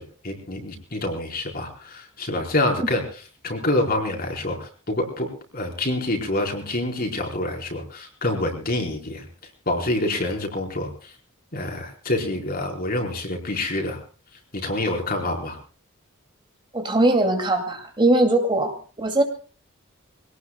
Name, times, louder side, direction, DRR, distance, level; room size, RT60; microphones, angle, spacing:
voice 1, 0.0-3.0 3.4-5.3 5.5-9.2 9.7-10.9 11.5-14.0 14.6-15.6, left 1 dB, 45° left, 2 dB, 4.3 m, -26 dB
voice 2, 16.7-19.2, right 2 dB, 20° right, 5 dB, 2.4 m, -21 dB
25.5 x 18.5 x 2.2 m, 0.38 s
head